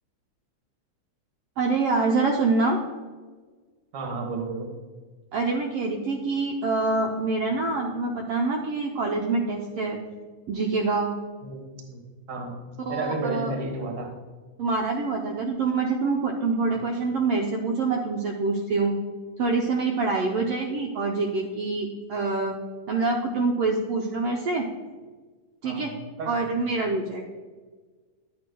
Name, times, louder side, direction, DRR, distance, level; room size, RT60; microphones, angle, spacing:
voice 1, 1.6-2.8 5.3-10.0 10.5-11.1 12.9-13.5 14.6-18.9 19.4-22.5 22.9-24.7 25.6-25.9 26.3-27.2, right 3 dB, 85° right, 0 dB, 1.3 m, -25 dB
voice 2, 3.9-4.7 11.4-11.6 11.9-12.0 12.3-12.6 12.9-14.1 16.7-16.8 25.6-26.3, right 3 dB, 50° right, 2 dB, 0.9 m, -32 dB
10.5 x 8.4 x 2.3 m, 1.4 s
omnidirectional pair, 3.6 m